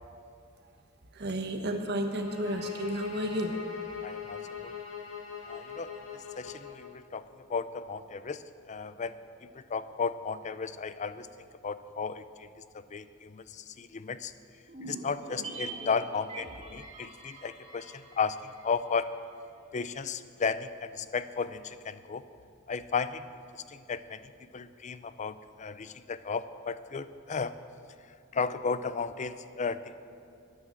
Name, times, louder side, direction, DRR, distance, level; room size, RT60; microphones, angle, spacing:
voice 1, 1.1-3.6, right 1 dB, 55° right, 5 dB, 1.2 m, -32 dB
sound 1, 2.0-6.9, left 7 dB, 70° left, 2.2 m, -41 dB
voice 2, 4.0-4.7 5.5-7.2 7.5-11.3 11.6-12.5 12.7-14.3 14.8-19.1 19.7-22.2 22.7-23.3 23.7-27.5 28.3-29.9, left 5 dB, 35° left, 14 dB, 0.5 m, -34 dB
sound 2, 14.7-19.2 19.4-19.5, right 3 dB, 35° right, 2.0 m, -44 dB
11.5 x 9.7 x 7.6 m, 2.5 s
head